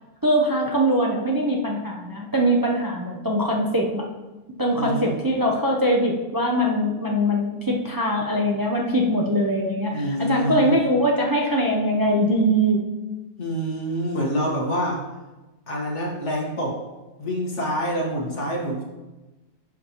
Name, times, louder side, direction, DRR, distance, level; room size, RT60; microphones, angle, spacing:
voice 1, 0.2-4.0 4.6-12.8, equal, 20° right, -1 dB, 0.6 m, -22 dB
voice 2, 4.7-5.2 9.9-10.8 13.4-15.0 15.7-16.8 17.2-18.8, equal, 65° left, -1 dB, 1.8 m, -26 dB
11.0 x 5.6 x 3.0 m, 1.1 s
omnidirectional pair, 1.3 m